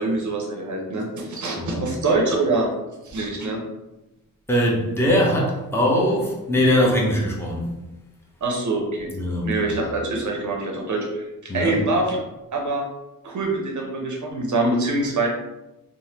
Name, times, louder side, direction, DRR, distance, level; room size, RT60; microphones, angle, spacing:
voice 1, 0.0-2.7 3.0-3.6 8.4-9.1 9.4-12.2 12.5-12.9 13.2-15.3, right 2 dB, 55° right, 0 dB, 0.6 m, -24 dB
voice 2, 1.6-2.0 4.5-7.6 9.1-9.5 11.5-11.8, equal, 5° left, -3 dB, 0.6 m, -21 dB
3.3 x 2.1 x 2.8 m, 0.99 s
wide cardioid pair, 100°, 34 cm